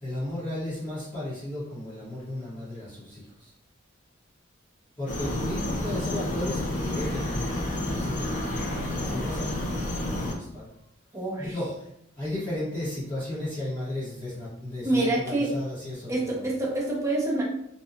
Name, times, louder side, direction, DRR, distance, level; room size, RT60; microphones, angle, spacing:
voice 1, 0.0-3.5 5.0-7.6 7.9-8.6 9.0-10.7 11.4-11.9 12.2-16.4, left 1 dB, 20° left, -13 dB, 1.1 m, -34 dB
sound 1, 5.1-10.3, left 1 dB, 40° left, 0.5 m, -30 dB
voice 2, 11.1-11.6 14.8-15.5 16.1-17.4, right 2 dB, 15° right, -4 dB, 0.6 m, -26 dB
2.8 x 2.3 x 2.5 m, 0.75 s
head